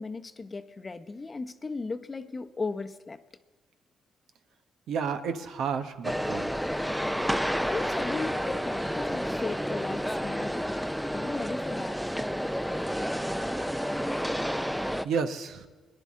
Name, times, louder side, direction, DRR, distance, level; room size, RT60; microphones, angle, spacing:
voice 1, 0.0-3.2 7.6-10.8 11.1-12.0, left 3 dB, 25° left, 8 dB, 0.7 m, -36 dB
voice 2, 4.9-6.5 15.0-15.7, right 6 dB, 75° right, 8 dB, 1.0 m, -31 dB
sound 1, 6.0-15.1, equal, ahead, 0.4 m, -30 dB
22.5 x 10.5 x 3.7 m, 1.3 s
cardioid pair, 90°, 0 cm